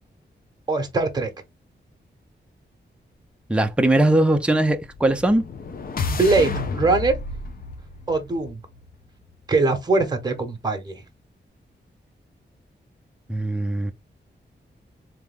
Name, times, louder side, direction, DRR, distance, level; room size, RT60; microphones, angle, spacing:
voice 1, 0.7-1.3 6.1-7.1 8.1-8.6 9.5-11.0, right 3 dB, 20° right, 1.2 m, -22 dB
voice 2, 3.5-5.4 13.3-13.9, right 1 dB, 5° right, 0.5 m, -20 dB
sound 1, 4.8-9.0, left 4 dB, 50° left, 0.7 m, -31 dB
3.5 x 3.3 x 3.5 m
wide cardioid pair, 145°, 19 cm